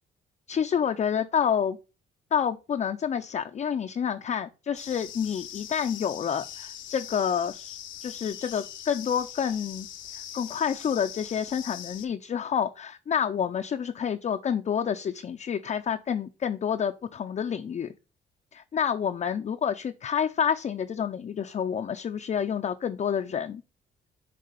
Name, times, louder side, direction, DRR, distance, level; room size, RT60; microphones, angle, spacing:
voice 1, 0.5-1.8 2.3-9.9 10.1-17.9 18.5-23.6, left 8 dB, 35° left, 0.4 m, -28 dB
sound 1, 4.7-12.1, left 11 dB, 75° left, 0.7 m, -42 dB
6.7 x 3.3 x 5.2 m
cardioid pair, 90°, 20 cm